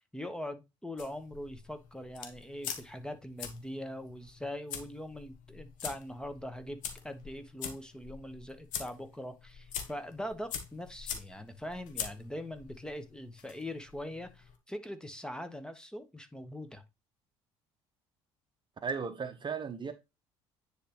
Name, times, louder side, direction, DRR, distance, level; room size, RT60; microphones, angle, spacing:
voice 1, 0.0-6.8 7.0-16.8, left 1 dB, 5° left, 1.1 m, -42 dB
sound 1, 1.0-14.6, left 8 dB, 60° left, 1.1 m, -44 dB
voice 2, 18.8-19.9, right 5 dB, 30° right, 0.9 m, -35 dB
9.8 x 3.4 x 3.0 m
hypercardioid pair, 60°, 15 cm